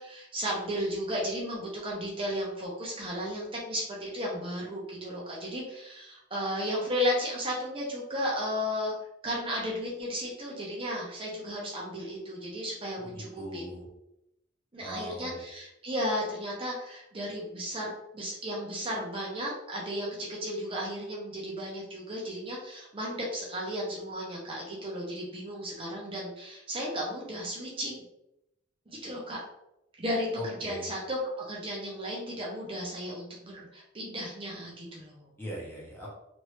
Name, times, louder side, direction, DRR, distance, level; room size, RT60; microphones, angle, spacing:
voice 1, 0.0-8.9 9.2-13.6 14.7-28.0 28.9-29.4 30.0-30.3 30.6-31.2 31.5-35.3, equal, 25° right, -4 dB, 0.7 m, -34 dB
voice 2, 13.0-13.9 14.8-15.5 30.3-30.9 35.4-36.1, equal, 10° left, -5 dB, 0.8 m, -40 dB
3.1 x 2.6 x 3.1 m, 0.83 s
head